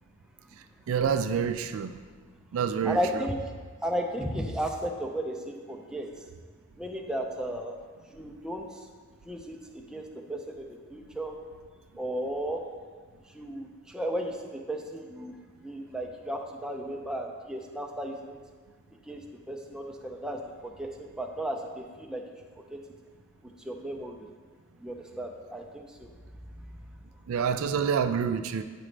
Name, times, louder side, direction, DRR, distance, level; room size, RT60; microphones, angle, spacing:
voice 1, 0.9-2.0 2.5-3.3 27.3-28.6, right 7 dB, 65° right, 9 dB, 0.3 m, -27 dB
voice 2, 2.8-3.4 3.8-6.1 6.8-7.7 8.1-8.7 9.3-10.0 10.3-11.3 12.0-12.6 13.3-15.4 15.6-18.4 19.1-19.2 19.5-22.2 22.7-22.8 23.6-24.2 24.8-26.1, right 1 dB, 5° right, 1 dB, 0.4 m, -34 dB
8.6 x 5.0 x 3.2 m, 1.5 s
head